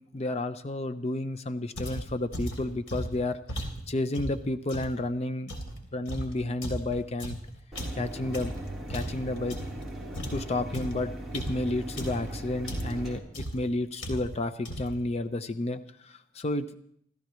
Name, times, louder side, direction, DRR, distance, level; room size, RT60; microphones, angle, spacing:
voice 1, 0.0-5.5 5.9-7.4 7.9-8.5 8.9-9.6 10.3-16.8, left 2 dB, 35° left, 10 dB, 0.6 m, -31 dB
sound 1, 1.8-5.0 5.5-9.9 10.1-12.3 12.7-13.1 13.3-13.7 14.0-14.4 14.6-15.0, equal, 80° left, 3.2 m, -37 dB
Mechanisms, 7.7-13.2, right 1 dB, ahead, 3.6 m, -39 dB
27.5 x 14.0 x 3.1 m, 0.66 s
head